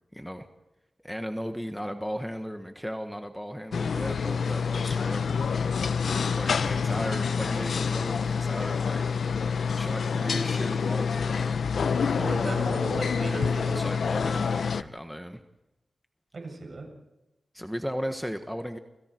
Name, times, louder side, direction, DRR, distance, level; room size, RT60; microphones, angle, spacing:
voice 1, 0.1-0.5 1.0-5.4 6.2-9.0 9.7-11.6 12.1-12.7 13.3-15.4 17.5-18.8, equal, ahead, 6 dB, 1.5 m, -36 dB
sound 1, 3.7-14.8, left 6 dB, 80° left, 0.7 m, -27 dB
voice 2, 12.0-14.0 16.3-16.9, right 2 dB, 55° right, 3 dB, 7.4 m, -35 dB
29.5 x 27.0 x 4.7 m, 0.98 s
wide cardioid pair, 75°, 0 cm